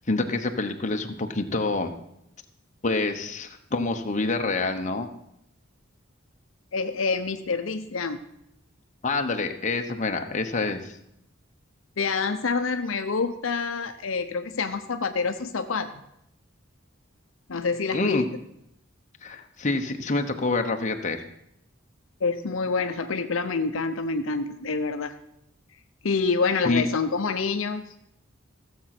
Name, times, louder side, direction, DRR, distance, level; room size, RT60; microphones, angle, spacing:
voice 1, 0.1-1.9 2.8-5.1 9.0-11.0 17.9-18.3 19.2-21.2 26.6-26.9, left 3 dB, 35° left, 5 dB, 1.0 m, -27 dB
voice 2, 6.7-8.2 12.0-16.0 17.5-18.2 22.2-25.1 26.0-27.9, left 4 dB, 70° left, 8 dB, 0.7 m, -27 dB
15.5 x 7.5 x 6.0 m, 0.79 s
head